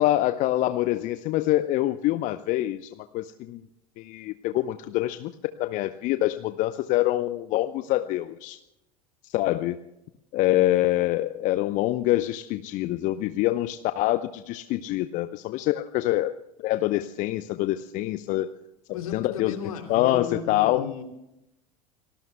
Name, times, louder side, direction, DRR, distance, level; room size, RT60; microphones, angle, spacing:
voice 1, 0.0-3.6 4.0-5.3 5.6-8.6 9.2-9.8 10.3-16.3 16.6-18.5 18.9-19.6 19.9-20.8, left 15 dB, 40° left, 11 dB, 0.8 m, -25 dB
voice 2, 18.9-21.0, left 7 dB, 65° left, 4 dB, 2.8 m, -35 dB
28.5 x 20.0 x 2.2 m, 0.87 s
figure-of-eight pair, 80°, 19 cm